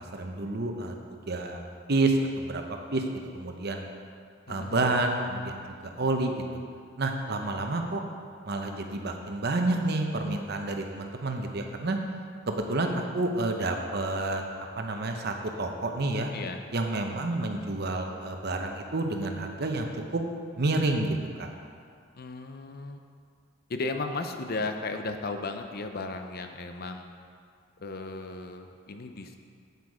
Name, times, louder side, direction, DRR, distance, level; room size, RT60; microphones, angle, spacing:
voice 1, 0.0-1.6 1.9-3.0 3.3-3.9 4.5-5.5 5.8-6.4 7.0-8.0 8.5-12.0 12.5-14.4 14.8-16.3 16.7-20.2 20.6-21.5, right 2 dB, 55° right, 4 dB, 0.9 m, -29 dB
voice 2, 4.5-4.8 16.3-16.6 22.1-23.0 23.7-27.1 27.8-29.4, left 3 dB, 50° left, 6 dB, 0.7 m, -35 dB
8.3 x 8.1 x 4.9 m, 2.2 s
head